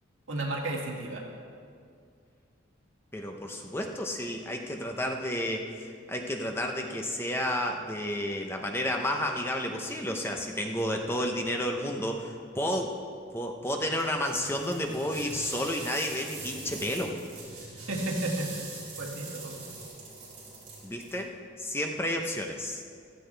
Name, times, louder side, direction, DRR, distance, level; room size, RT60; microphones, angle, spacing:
voice 1, 0.3-1.2 17.9-18.5 19.0-19.6, right 2 dB, 75° right, -2 dB, 2.2 m, -32 dB
voice 2, 3.1-5.7 6.1-13.0 13.3-17.2 20.8-21.3 21.6-22.8, left 1 dB, 10° left, 2 dB, 0.8 m, -31 dB
sound 1, 14.0-21.2, right 3 dB, 35° right, 3.9 m, -43 dB
15.5 x 13.0 x 3.4 m, 2.3 s
head